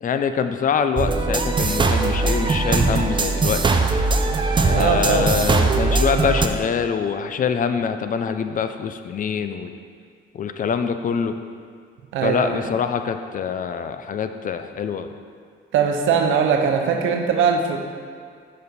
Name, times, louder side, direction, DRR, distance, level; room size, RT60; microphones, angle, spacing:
voice 1, 0.0-3.8 4.6-9.7 10.3-11.4 12.2-15.1, left 6 dB, 45° left, 9 dB, 0.4 m, -24 dB
sound 1, 1.0-6.5, right 3 dB, 25° right, 0.5 m, -20 dB
voice 2, 4.7-5.3 12.1-12.7 15.7-17.8, right 6 dB, 80° right, 3 dB, 0.8 m, -20 dB
6.6 x 5.2 x 4.1 m, 2.1 s
cardioid pair, 90°, 20 cm